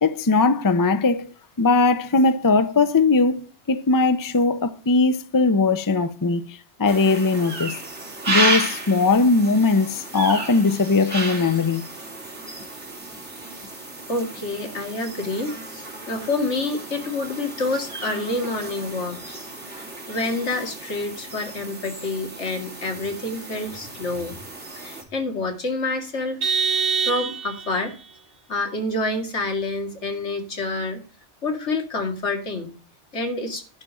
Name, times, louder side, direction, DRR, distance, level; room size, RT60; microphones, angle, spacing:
voice 1, 0.0-1.3 1.6-7.8 8.3-11.8, left 3 dB, 20° left, 0.6 m, -20 dB
sound 1, 6.9-25.0, right 2 dB, 85° right, 3.4 m, -32 dB
voice 2, 14.1-19.4 19.7-24.4 24.7-26.4 27.0-27.9 28.5-31.0 31.4-32.7 33.1-33.6, left 2 dB, 85° left, 2.5 m, -28 dB
Vehicle horn car horn honking, 26.4-27.8, right 6 dB, 55° right, 1.2 m, -24 dB
11.0 x 5.2 x 7.4 m
omnidirectional pair, 1.2 m